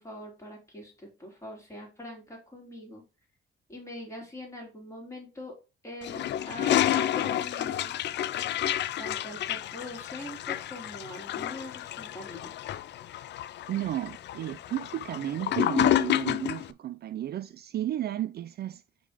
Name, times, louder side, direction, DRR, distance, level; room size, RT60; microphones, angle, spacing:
voice 1, 0.0-3.0 3.7-5.5 5.8-7.9 9.0-12.8, left 1 dB, 15° left, 3.1 m, -43 dB
Toilet flush, 6.0-16.7, left 12 dB, 60° left, 0.4 m, -30 dB
voice 2, 13.7-18.8, right 12 dB, 55° right, 0.4 m, -33 dB
5.1 x 3.8 x 5.0 m
cardioid pair, 90°, 20 cm